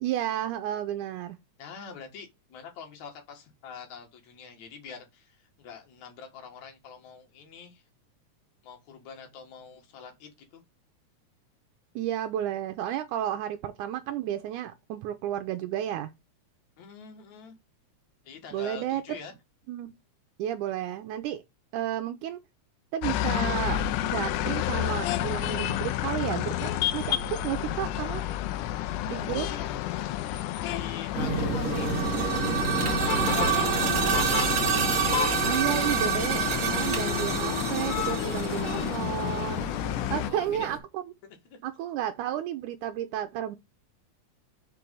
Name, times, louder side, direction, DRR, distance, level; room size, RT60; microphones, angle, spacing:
voice 1, 0.0-1.4 12.0-16.1 18.5-19.0 19.7-19.9 20.4-21.4 21.7-22.4 22.9-28.2 29.1-29.5 35.4-39.7 40.1-41.0 41.6-43.6, right 11 dB, 80° right, 2.1 m, -32 dB
voice 2, 1.6-7.8 8.6-10.6 16.8-17.6 18.2-19.3 29.4-29.7 30.0-32.0 32.7-33.9 40.2-40.7, left 6 dB, 65° left, 2.9 m, -45 dB
sound 1, 23.0-40.3, left 13 dB, 85° left, 2.1 m, -30 dB
sound 2, 31.1-40.8, right 3 dB, 30° right, 1.8 m, -33 dB
sound 3, 31.6-39.4, right 8 dB, 55° right, 2.1 m, -28 dB
5.4 x 4.5 x 5.3 m
omnidirectional pair, 3.6 m